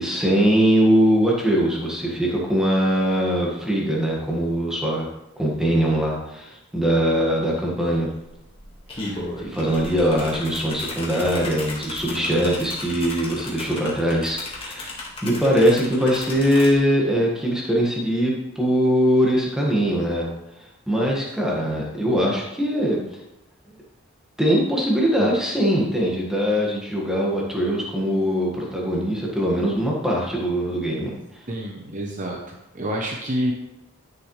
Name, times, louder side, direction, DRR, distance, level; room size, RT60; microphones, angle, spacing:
voice 1, 0.0-5.1 5.4-8.1 8.9-20.3 20.9-23.0 24.4-31.2, equal, 5° right, -3 dB, 1.7 m, -22 dB
sound 1, 7.8-7.9 8.2-16.7, left 2 dB, 25° left, 1.7 m, -35 dB
voice 2, 31.5-32.4 32.7-33.5, equal, 35° right, 0 dB, 0.8 m, -28 dB
11.0 x 6.7 x 3.2 m, 0.88 s
head